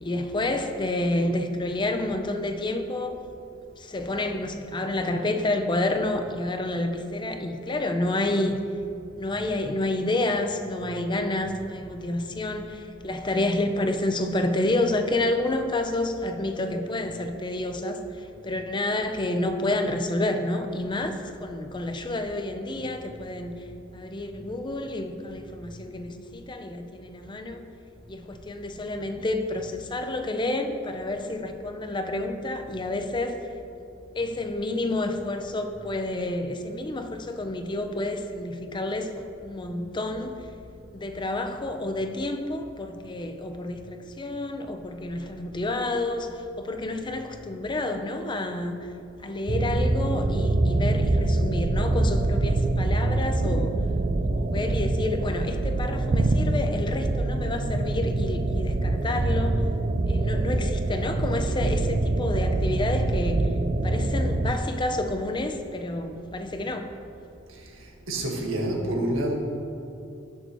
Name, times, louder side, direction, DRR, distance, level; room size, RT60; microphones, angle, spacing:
voice 1, 0.0-3.2 3.8-8.6 9.2-23.6 23.9-27.6 28.1-33.4 34.1-40.4 40.9-46.3 46.6-48.8 49.2-53.8 54.2-59.6 60.1-63.5 63.8-66.9, left 2 dB, 25° left, 6 dB, 0.6 m, -29 dB
sound 1, 49.5-64.5, right 2 dB, 35° right, 0.5 m, -25 dB
voice 2, 68.1-69.3, right 1 dB, 90° right, 0 dB, 1.6 m, -27 dB
18.0 x 6.8 x 3.1 m, 2.6 s
head